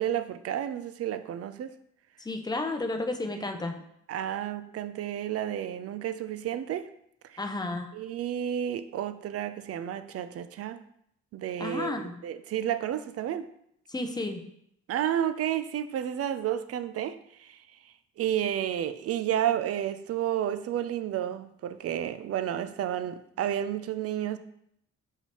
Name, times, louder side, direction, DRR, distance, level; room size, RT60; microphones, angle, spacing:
voice 1, 0.0-1.7 4.1-6.9 7.3-7.4 7.9-10.8 11.3-13.5 14.9-17.6 18.2-24.4, right 10 dB, 50° right, 12 dB, 0.4 m, -31 dB
voice 2, 2.2-3.8 7.4-7.9 11.6-12.1 13.9-14.4, left 2 dB, 15° left, 4 dB, 0.6 m, -32 dB
5.8 x 2.7 x 3.0 m, 0.73 s
supercardioid pair, 65°, 30 cm